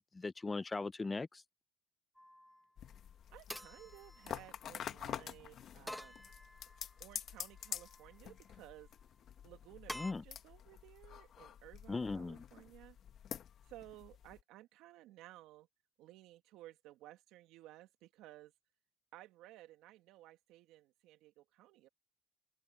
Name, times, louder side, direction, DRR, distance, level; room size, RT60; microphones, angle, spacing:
voice 1, 0.0-1.4 9.9-10.2 11.9-12.4, left 3 dB, 20° left, 0.6 m, -39 dB
sound 1, 2.2-2.7 3.5-4.9 5.9-7.0 7.5-8.2 9.9-10.1, left 1 dB, 5° left, 1.3 m, -49 dB
sound 2, 2.8-14.4, left 9 dB, 55° left, 1.6 m, -48 dB
voice 2, 3.3-6.2 7.0-8.9 9.4-13.0 13.6-15.7 16.0-18.5 19.1-21.9, right 15 dB, 80° right, 2.3 m, -57 dB
cardioid pair, 100°, 0 cm